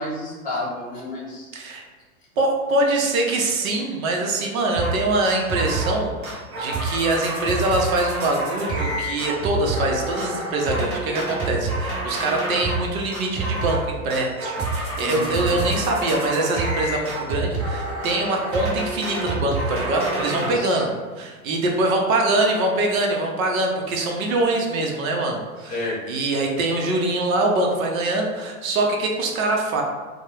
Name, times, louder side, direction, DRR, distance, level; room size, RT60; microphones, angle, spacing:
voice 1, 0.0-1.5 15.0-15.5 20.4-20.8 25.7-26.0, left 2 dB, 20° left, -6 dB, 0.8 m, -30 dB
voice 2, 2.4-29.8, right 2 dB, 70° right, 1 dB, 0.6 m, -24 dB
sound 1, 4.8-5.0 5.2-6.0 6.2-12.8 13.1-13.8 14.1-20.5, right 2 dB, 30° right, 0.8 m, -27 dB
2.2 x 2.0 x 3.0 m, 1.4 s
hypercardioid pair, 115°, 44 cm